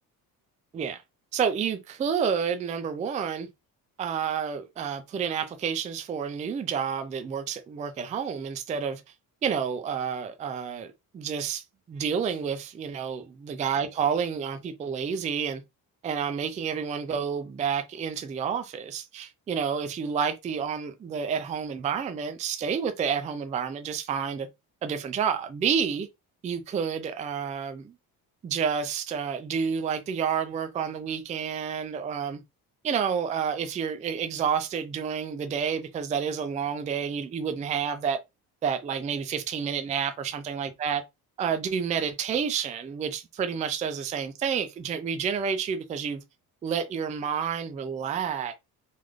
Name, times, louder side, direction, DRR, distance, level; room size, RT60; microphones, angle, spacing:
voice 1, 1.3-3.5 4.0-9.0 9.4-15.6 16.0-24.5 24.8-26.1 26.4-27.9 28.4-32.4 32.8-38.2 38.6-41.0 41.4-46.2 46.6-48.7, right 7 dB, 20° right, 0.3 m, -29 dB
3.9 x 2.5 x 3.1 m
cardioid pair, 155°, 36 cm